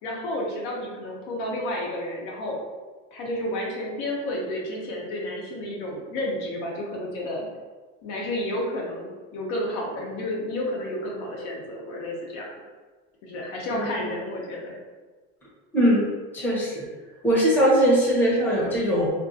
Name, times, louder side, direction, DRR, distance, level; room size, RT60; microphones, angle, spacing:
voice 1, 0.0-2.6 3.1-7.5 8.0-12.5 13.2-14.8, left 1 dB, 65° left, -2 dB, 0.8 m, -31 dB
voice 2, 13.7-14.0 15.7-16.0 16.3-16.8 17.2-19.1, equal, 5° left, -7 dB, 0.7 m, -21 dB
2.6 x 2.4 x 2.5 m, 1.3 s
cardioid pair, 140°, 30 cm